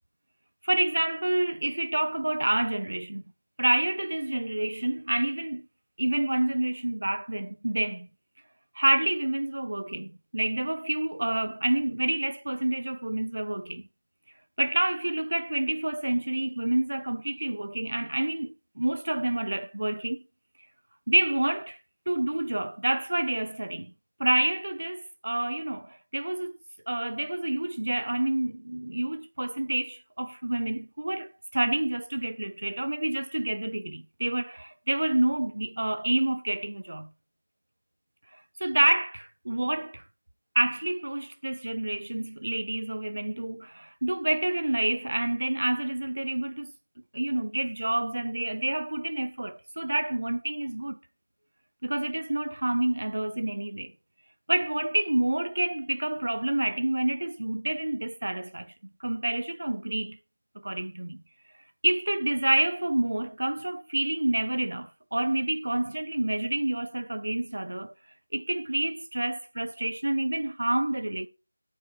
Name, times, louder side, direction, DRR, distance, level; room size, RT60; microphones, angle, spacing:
voice 1, 0.6-3.2 3.6-5.6 6.0-8.1 8.8-13.9 14.6-20.2 21.1-21.8 22.1-23.9 24.2-26.5 26.9-37.1 38.6-40.0 40.6-46.7 47.1-51.0 51.8-53.9 54.5-58.7 59.0-60.2 60.6-61.2 61.8-67.9 68.3-71.3, right 1 dB, 60° right, 0.5 m, -28 dB
13.0 x 4.7 x 3.2 m
figure-of-eight pair, 180°, 0 cm